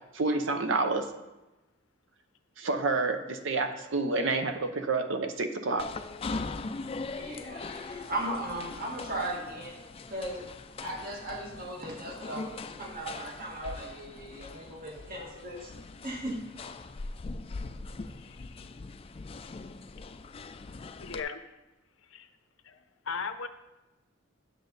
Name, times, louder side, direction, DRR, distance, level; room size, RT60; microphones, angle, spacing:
voice 1, 0.1-1.1 2.6-5.9, right 3 dB, 70° right, 7 dB, 0.8 m, -29 dB
sound 1, 5.8-21.2, left 3 dB, 30° left, 0.4 m, -41 dB
voice 2, 7.1-9.8 10.1-10.4 10.8-15.7 16.0-16.4, right 1 dB, 45° right, -1 dB, 1.7 m, -37 dB
voice 3, 18.1-18.7 21.0-21.5 22.1-22.3 22.6-22.8 23.0-23.5, left 5 dB, 85° left, 9 dB, 0.7 m, -38 dB
10.0 x 6.5 x 4.0 m, 1.0 s
head